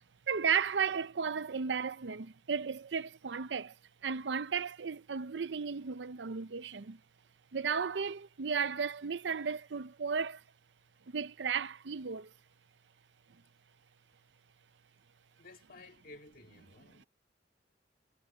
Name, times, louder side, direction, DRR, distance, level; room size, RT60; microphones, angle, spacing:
voice 1, 0.3-3.7 4.0-7.0 7.5-10.4 11.1-12.3, right 6 dB, 85° right, 0.6 m, -34 dB
voice 2, 15.4-17.1, left 2 dB, 55° left, 2.2 m, -54 dB
head